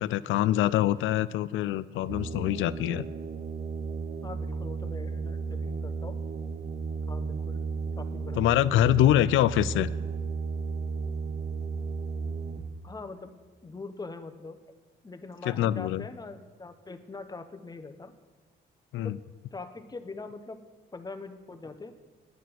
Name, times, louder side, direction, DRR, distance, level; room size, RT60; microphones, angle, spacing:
voice 1, 0.0-3.1 8.4-9.9 15.5-16.1 18.9-19.2, left 13 dB, 80° left, 17 dB, 0.4 m, -24 dB
sound 1, 2.1-12.6, right 5 dB, 55° right, 1.0 m, -34 dB
voice 2, 4.2-6.2 7.1-7.6 8.0-9.1 12.8-14.6 15.0-18.1 19.0-19.2 19.5-20.6 20.9-21.9, left 3 dB, 20° left, 7 dB, 1.0 m, -42 dB
9.5 x 9.3 x 6.0 m, 1.3 s
cardioid pair, 90°, 20 cm